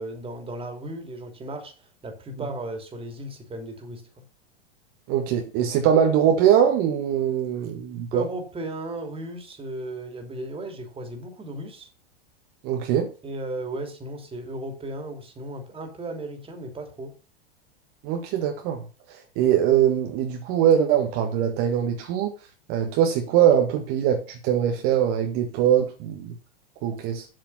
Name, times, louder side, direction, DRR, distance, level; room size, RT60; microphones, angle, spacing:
voice 1, 0.0-1.7 2.0-4.0 8.1-11.9 13.2-17.1, right 1 dB, 20° right, 2.9 m, -35 dB
voice 2, 5.1-8.2 12.6-13.1 18.0-18.8 19.4-22.3 22.7-26.4 26.8-27.3, right 9 dB, 50° right, 1.7 m, -22 dB
7.9 x 7.0 x 5.7 m
hypercardioid pair, 110°, 30 cm